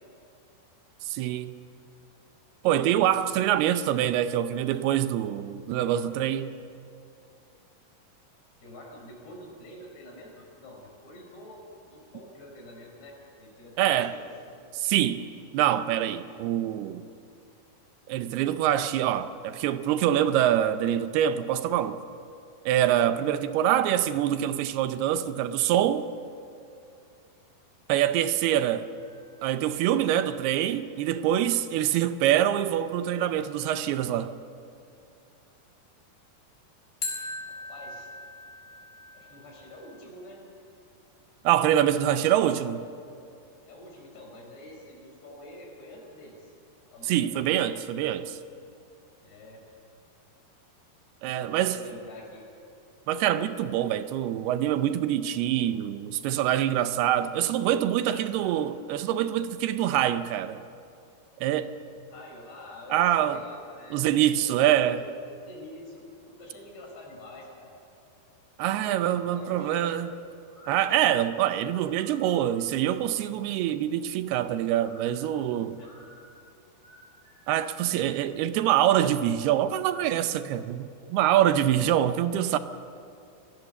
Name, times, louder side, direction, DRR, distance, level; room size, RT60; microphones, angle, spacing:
voice 1, 1.1-1.5 2.6-6.6 13.8-14.2 14.7-15.3 15.5-17.0 18.1-22.0 22.7-26.1 27.9-28.9 29.4-34.3 41.4-42.8 47.1-48.4 51.2-51.8 53.1-60.6 61.4-61.7 62.9-63.4 63.9-65.0 68.6-70.1 70.7-75.8 77.5-82.6, right 11 dB, 80° right, 2.6 m, -25 dB
voice 2, 8.6-11.6 11.9-14.3 16.2-16.4 37.7-38.1 39.1-40.4 41.9-42.7 43.6-46.5 46.9-47.2 49.2-49.6 51.3-52.5 58.0-58.6 61.9-64.1 64.4-65.2 65.4-67.7 68.8-69.9 75.6-76.1, left 1 dB, 80° left, 7.2 m, -47 dB
sound 1, 29.0-30.0 37.0-40.0, left 3 dB, 15° left, 4.4 m, -40 dB
sound 2, 69.4-72.7 74.7-77.8, equal, 35° right, 8.2 m, -53 dB
29.5 x 18.0 x 7.0 m
omnidirectional pair, 4.8 m